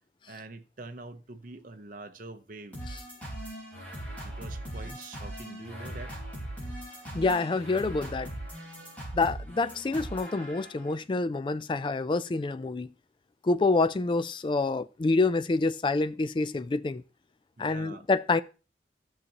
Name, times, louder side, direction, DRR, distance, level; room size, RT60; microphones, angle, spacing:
voice 1, 0.3-2.8 4.2-6.1 17.6-18.1, right 3 dB, 50° right, 0.7 m, -45 dB
sound 1, 2.7-10.9, right 1 dB, 10° left, 4.2 m, -40 dB
voice 2, 7.1-8.3 9.1-12.9 13.4-17.0 17.6-18.4, left 3 dB, 25° left, 0.3 m, -27 dB
13.5 x 6.6 x 2.9 m
head